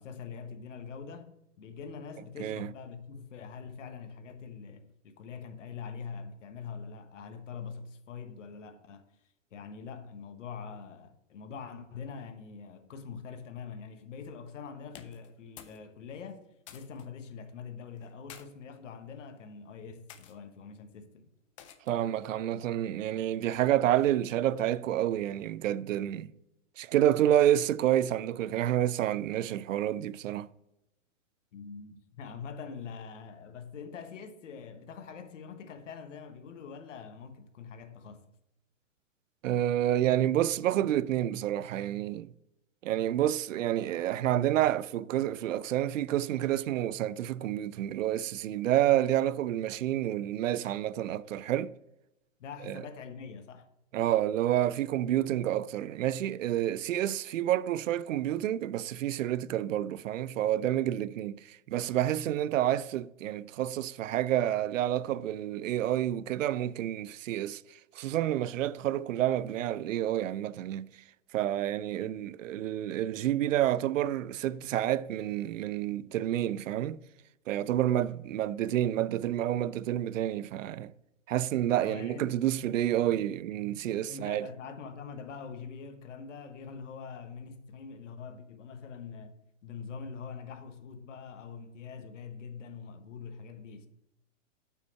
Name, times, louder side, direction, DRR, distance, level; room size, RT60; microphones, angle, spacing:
voice 1, 0.0-9.0 9.5-16.4 16.7-21.3 31.5-38.2 52.4-53.7 72.0-72.2 81.8-82.3 84.1-89.4 89.6-93.9, left 6 dB, 70° left, 1.2 m, -44 dB
sound 1, 14.9-15.8 16.1-17.1 18.0-18.5 19.2-19.5 20.1-20.4 21.6-22.1, left 9 dB, 25° left, 0.5 m, -51 dB
voice 2, 21.9-26.3 26.8-30.5 39.4-42.3 42.8-51.7 52.7-52.8 53.9-67.6 68.0-70.9 71.3-77.0 77.5-80.9 81.3-84.5, right 12 dB, 80° right, 0.5 m, -29 dB
8.2 x 5.8 x 4.5 m
hypercardioid pair, 150°, 39 cm